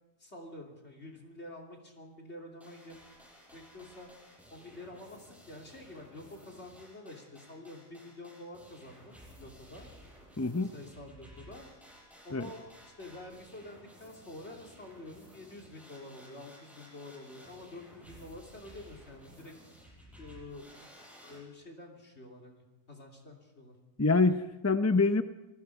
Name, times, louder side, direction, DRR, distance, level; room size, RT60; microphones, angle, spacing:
voice 1, 0.2-3.0 3.5-4.1 4.5-9.9 10.7-11.7 12.2-12.7 13.0-19.5 20.1-20.6 21.2-23.8, left 2 dB, 55° left, 0 dB, 3.4 m, -48 dB
sound 1, 2.6-21.4, equal, ahead, 7.5 m, -55 dB
voice 2, 10.4-10.7 12.3-12.5 24.0-25.2, left 3 dB, 20° left, 9 dB, 0.4 m, -26 dB
28.0 x 19.5 x 4.8 m, 1.1 s
omnidirectional pair, 1.4 m